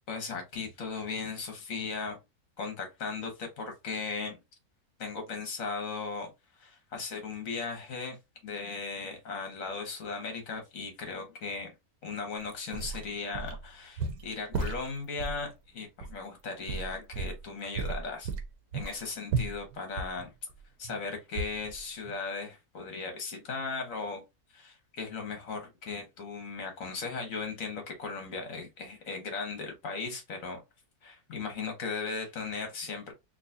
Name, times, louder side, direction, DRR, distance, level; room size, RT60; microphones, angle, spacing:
voice 1, 0.1-2.2 2.6-4.4 5.0-6.3 6.6-8.2 8.4-11.7 12.0-18.3 18.7-20.3 20.8-24.2 24.5-30.6 31.0-33.1, left 4 dB, 65° left, 1.5 m, -37 dB
sound 1, 12.5-13.7 14.0-15.4 16.0-16.1 16.7-17.5 17.7-21.0 21.3-21.8 22.0-22.1, right 4 dB, 75° right, 1.1 m, -34 dB
3.9 x 2.5 x 2.6 m
omnidirectional pair, 1.6 m